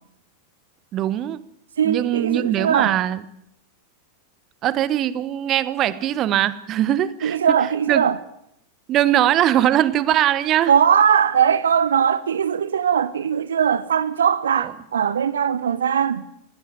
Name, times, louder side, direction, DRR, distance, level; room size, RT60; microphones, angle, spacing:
voice 1, 0.9-1.4 1.8-3.2 4.6-7.4 7.9-8.0 8.9-10.7, right 12 dB, 35° right, 1.1 m, -21 dB
voice 2, 1.8-3.0 7.2-8.2 10.7-16.3, right 8 dB, 65° right, 0.9 m, -20 dB
19.5 x 16.5 x 9.8 m
figure-of-eight pair, 90°, 0 cm